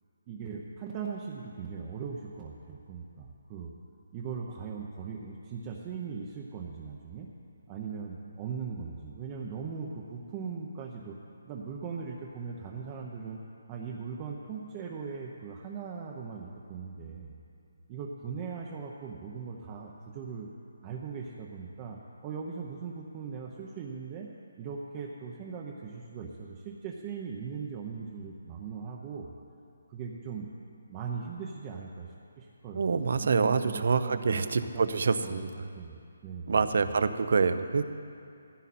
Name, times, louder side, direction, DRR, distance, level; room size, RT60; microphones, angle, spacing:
voice 1, 0.3-3.7 4.1-7.3 7.7-11.2 11.4-13.4 13.7-17.4 17.9-20.5 20.8-24.3 24.6-29.3 29.9-30.5 30.9-34.4 34.7-35.4 35.7-37.0, right 5 dB, 15° right, -2 dB, 0.8 m, -39 dB
voice 2, 32.8-35.7 36.5-37.8, right 5 dB, 50° right, 11 dB, 0.7 m, -26 dB
18.0 x 15.0 x 4.3 m, 2.6 s
hypercardioid pair, 175°, 0 cm